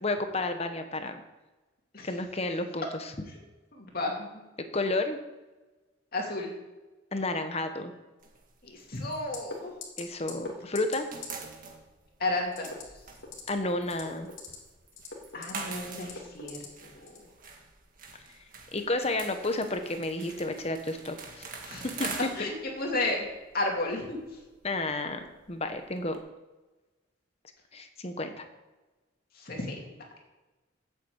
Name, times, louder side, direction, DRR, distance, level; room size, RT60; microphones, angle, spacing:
voice 1, 0.0-1.2 2.0-2.9 4.7-5.2 7.1-7.9 10.0-11.1 13.5-14.3 18.7-21.5 21.8-22.1 24.6-25.2 25.5-26.2 27.7-28.4, left 2 dB, 30° left, 7 dB, 1.0 m, -31 dB
voice 2, 3.7-4.4 6.1-6.5 8.6-9.7 12.2-12.7 15.3-17.3 21.6-21.9 22.3-23.2 23.5-24.2 29.3-29.9, left 2 dB, 50° left, 0 dB, 2.7 m, -33 dB
sound 1, 8.2-10.5 10.7-26.2, right 4 dB, 45° right, 1.8 m, -45 dB
sound 2, 9.3-9.6 9.8-10.0 10.3-10.5 10.8-11.0 11.2-11.3 12.5-12.8 13.2-13.5 13.9-14.6 14.9-15.6 16.0-16.7 17.1-17.2, left 5 dB, 80° left, 2.6 m, -40 dB
8.4 x 8.3 x 8.0 m, 1.2 s
head